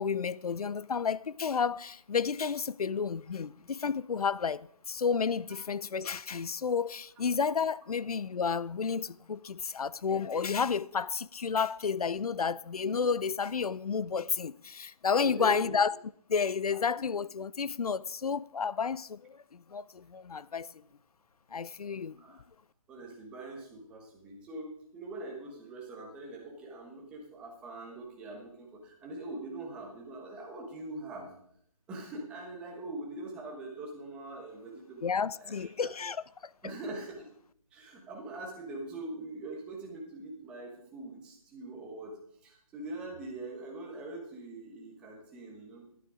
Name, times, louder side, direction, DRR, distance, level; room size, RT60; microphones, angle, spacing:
voice 1, 0.0-16.0 16.3-20.7 21.5-22.2 35.0-36.2, left 6 dB, 85° left, 0.5 m, -31 dB
voice 2, 15.2-15.7 22.2-22.4 22.9-31.3 31.9-35.9 36.6-37.3 37.7-45.8, right 2 dB, 5° right, 1.1 m, -43 dB
12.5 x 10.5 x 4.9 m
hypercardioid pair, 170°, 19 cm